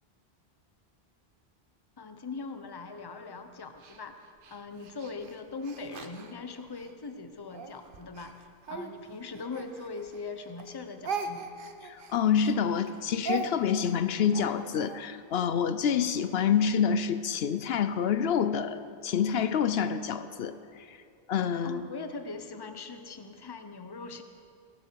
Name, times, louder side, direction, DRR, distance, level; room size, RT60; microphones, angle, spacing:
voice 1, 2.0-4.2 4.5-11.5 21.6-24.2, left 4 dB, 25° left, 8 dB, 0.7 m, -41 dB
Speech, 3.8-6.9 7.5-10.3 10.6-15.0, right 5 dB, 60° right, 1.0 m, -40 dB
voice 2, 11.8-21.0 21.3-21.8, left 7 dB, 75° left, 11 dB, 0.8 m, -27 dB
19.5 x 11.5 x 4.6 m, 2.4 s
omnidirectional pair, 1.1 m